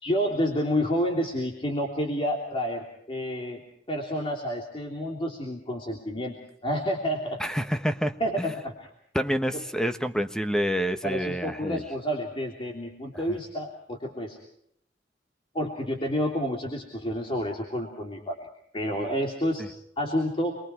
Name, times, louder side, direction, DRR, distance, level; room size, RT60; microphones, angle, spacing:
voice 1, 0.0-3.6 3.9-6.4 6.6-7.4 8.2-8.7 9.5-9.6 11.0-14.4 15.5-18.5 18.7-19.6 20.0-20.6, equal, 30° left, 0 dB, 3.2 m, -29 dB
voice 2, 7.4-8.5 9.1-11.8 13.1-13.2, equal, 5° left, 8 dB, 1.2 m, -28 dB
28.5 x 23.0 x 4.7 m, 0.72 s
head